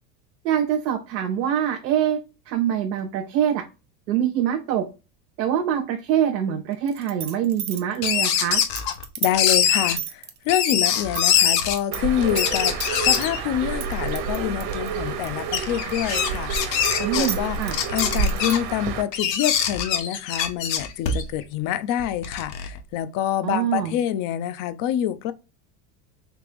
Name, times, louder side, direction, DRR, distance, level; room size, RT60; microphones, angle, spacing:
voice 1, 0.4-2.2 2.5-3.6 4.1-4.8 5.4-8.6 17.0-17.8 23.4-24.0, right 9 dB, 85° right, 0.7 m, -24 dB
sound 1, 6.9-12.0 12.3-13.3 13.8-15.6 15.9-18.7, right 7 dB, 20° right, 0.4 m, -33 dB
sound 2, 8.0-9.0 9.3-9.9 10.5-11.8 12.2-13.4 13.9-14.0 14.7-14.8 15.5-17.3 17.7-18.6 19.1-21.4 22.0-22.8, left 8 dB, 85° left, 0.8 m, -23 dB
voice 2, 9.2-12.7 13.0-17.6 17.9-25.3, left 11 dB, 45° left, 0.4 m, -26 dB
Bird, 11.9-19.0, right 5 dB, 50° right, 0.9 m, -29 dB
3.4 x 2.9 x 3.3 m
hypercardioid pair, 95°, 50 cm